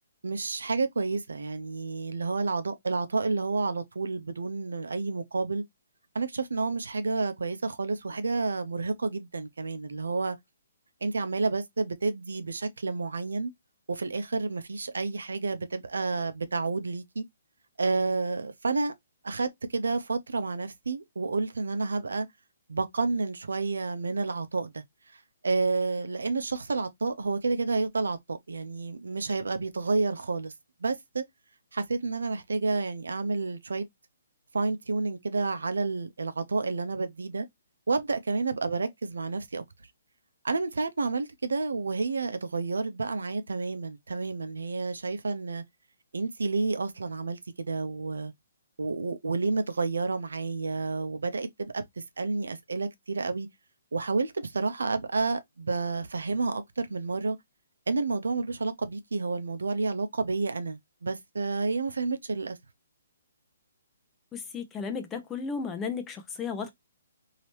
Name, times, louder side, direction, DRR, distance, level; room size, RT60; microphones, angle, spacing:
voice 1, 0.2-5.6 6.1-10.4 11.0-13.5 13.9-17.2 17.8-18.9 19.2-22.3 22.7-24.8 25.1-30.5 30.8-31.3 31.7-33.8 34.5-37.5 37.9-39.6 40.4-45.6 46.1-48.3 48.8-53.5 53.9-57.4 57.9-62.6, right 3 dB, 80° right, 0.6 m, -30 dB
voice 2, 64.3-66.7, left 5 dB, 15° left, 0.7 m, -34 dB
3.1 x 2.8 x 2.8 m
hypercardioid pair, 140°, 0 cm